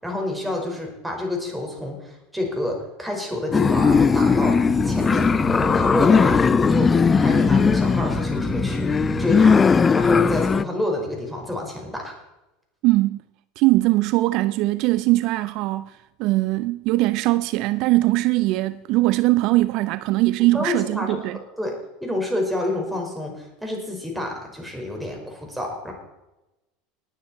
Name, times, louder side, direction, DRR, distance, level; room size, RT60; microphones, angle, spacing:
voice 1, 0.0-4.6 4.8-5.3 5.5-12.1 20.5-21.2 21.6-21.7 22.0-25.9, left 1 dB, 5° right, 5.3 m, -29 dB
sound 1, 3.5-10.6, left 5 dB, 25° left, 0.4 m, -18 dB
sound 2, 3.6-9.9, right 7 dB, 40° right, 3.0 m, -33 dB
voice 2, 12.8-13.2 13.6-21.4, right 19 dB, 60° right, 0.5 m, -21 dB
19.5 x 9.4 x 4.5 m
hypercardioid pair, 90°, 0 cm